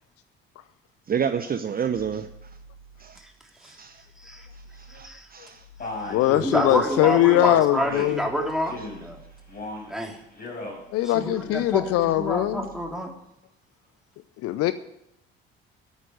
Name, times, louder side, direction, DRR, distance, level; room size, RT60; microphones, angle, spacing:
voice 1, 1.1-2.3 3.0-3.2 3.8-4.0 4.9-5.6, right 7 dB, 30° right, 9 dB, 0.8 m, -28 dB
sound 1, 1.9-3.4 3.8-10.3 10.6-12.9, right 1 dB, 80° left, 2.1 m, -50 dB
voice 2, 4.9-5.3 6.3-9.2 9.9-10.2 11.0-13.1, right 1 dB, ahead, 0 dB, 3.3 m, -28 dB
Male speech man speaking, 5.8-6.3 6.9-7.3 7.8-8.2 8.6-9.1 9.5-9.9 10.3-10.8, left 2 dB, 30° left, 5.0 m, -36 dB
voice 3, 6.1-8.2 10.9-12.7 14.4-14.7, left 15 dB, 50° left, 14 dB, 0.6 m, -21 dB
10.5 x 8.8 x 9.1 m, 0.82 s
figure-of-eight pair, 55°, 30 cm